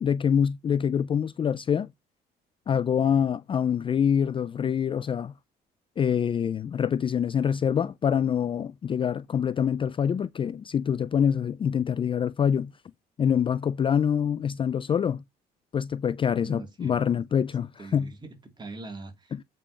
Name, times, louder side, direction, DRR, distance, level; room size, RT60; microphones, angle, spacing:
voice 1, 0.0-1.9 2.7-5.3 6.0-12.7 13.2-15.2 15.7-18.1 19.3-19.4, left 8 dB, 30° left, 0.4 m, -25 dB
voice 2, 16.4-17.2 17.8-19.4, right 3 dB, 25° right, 3.2 m, -42 dB
8.4 x 5.4 x 4.4 m
cardioid pair, 110°, 17 cm